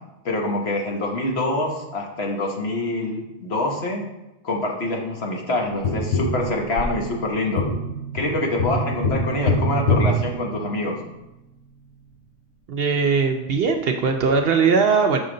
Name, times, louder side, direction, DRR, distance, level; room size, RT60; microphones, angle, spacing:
voice 1, 0.2-4.0 4.4-7.7 8.1-11.0, left 2 dB, 60° left, 0 dB, 1.3 m, -25 dB
Tap, 5.8-11.1 13.7-13.8, left 1 dB, 80° left, 1.2 m, -25 dB
voice 2, 12.7-15.2, right 5 dB, 60° right, 5 dB, 0.7 m, -20 dB
6.4 x 5.3 x 3.8 m, 0.95 s
omnidirectional pair, 1.3 m